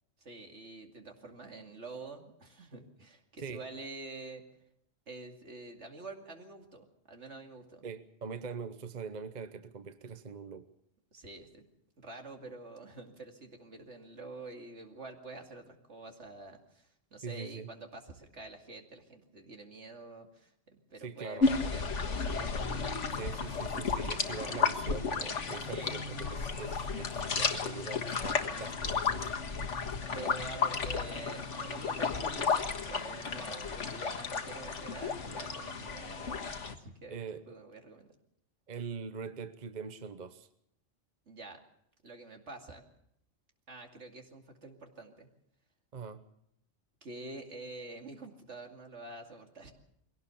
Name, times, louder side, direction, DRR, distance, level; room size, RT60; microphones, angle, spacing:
voice 1, 0.2-4.4 5.1-7.9 11.1-11.6 12.0-20.5 20.9-23.1 25.7-26.0 30.1-38.1 41.3-41.6 42.0-42.8 43.7-45.3 47.0-49.7, right 3 dB, 70° right, 3 dB, 2.8 m, -47 dB
voice 2, 7.8-10.7 17.2-17.7 21.0-21.5 23.1-29.3 37.1-37.4 38.7-40.5 45.9-46.2, right 5 dB, 40° right, 10 dB, 1.0 m, -42 dB
sound 1, 21.4-36.7, left 5 dB, 80° left, 1.9 m, -33 dB
22.0 x 17.5 x 7.0 m, 0.74 s
omnidirectional pair, 1.2 m